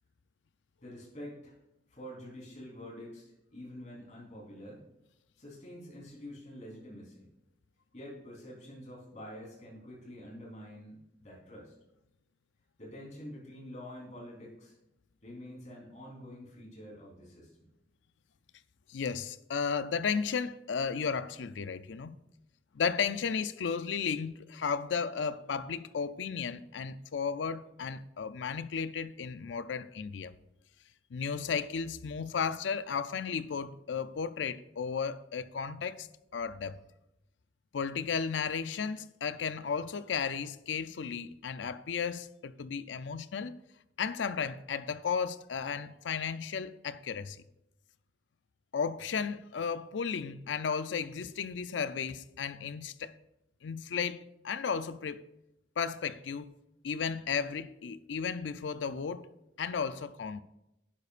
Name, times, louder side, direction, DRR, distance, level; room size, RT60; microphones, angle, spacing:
voice 1, 0.8-1.6 1.9-4.8 5.4-7.3 7.9-11.7 12.8-14.8 15.2-17.5, left 1 dB, 40° left, 3.8 m, -47 dB
voice 2, 18.9-22.2 22.7-30.3 31.1-36.1 36.3-36.8 37.7-43.6 44.0-47.4 48.7-53.1 53.6-55.3 55.8-56.5 56.8-59.3 59.6-60.4, left 6 dB, 85° left, 0.5 m, -34 dB
10.5 x 10.0 x 2.5 m
head